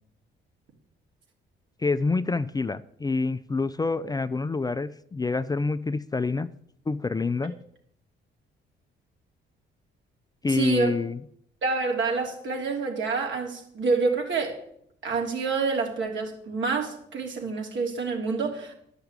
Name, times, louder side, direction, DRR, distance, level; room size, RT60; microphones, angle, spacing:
voice 1, 1.8-6.5 6.9-7.5 10.4-11.2, left 3 dB, 20° left, 12 dB, 0.4 m, -27 dB
voice 2, 10.5-10.9 11.6-14.6 15.0-18.7, right 4 dB, 70° right, 1 dB, 3.0 m, -27 dB
11.5 x 5.9 x 8.1 m, 0.70 s
cardioid pair, 90°, 20 cm